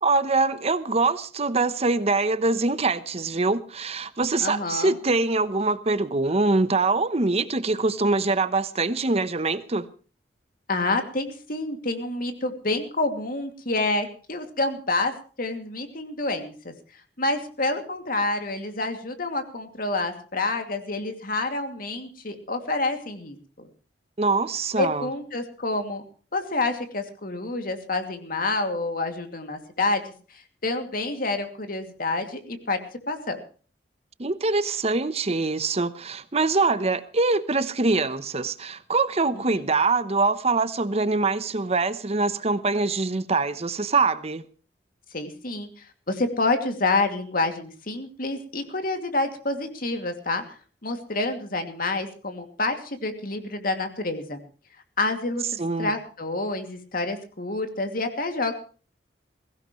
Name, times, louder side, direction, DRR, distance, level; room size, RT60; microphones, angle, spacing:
voice 1, 0.0-9.9 24.2-25.1 34.2-44.4 55.6-55.9, right 3 dB, 35° right, 0.9 m, -24 dB
voice 2, 4.4-4.9 10.7-16.7 17.2-23.7 24.8-26.0 26.3-32.8 33.1-33.4 39.3-39.6 45.1-50.4 50.8-54.4 55.0-58.5, left 2 dB, 55° left, 2.5 m, -28 dB
21.5 x 16.5 x 3.2 m
head